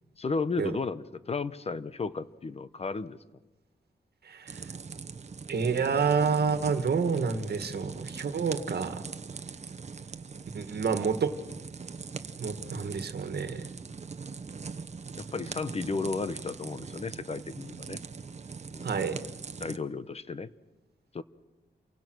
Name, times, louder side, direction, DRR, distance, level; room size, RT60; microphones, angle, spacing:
voice 1, 0.2-3.2 12.7-12.9 15.2-18.0 18.7-18.9 19.6-20.5 21.1-21.2, left 4 dB, 35° left, 14 dB, 0.8 m, -34 dB
voice 2, 4.3-4.6 5.5-9.0 10.5-11.3 12.4-13.6 18.8-19.2, right 5 dB, 70° right, 9 dB, 1.8 m, -28 dB
sound 1, 4.5-19.8, right 5 dB, 40° right, 1.0 m, -41 dB
28.5 x 23.5 x 6.2 m, 1.1 s
wide cardioid pair, 150°, 17 cm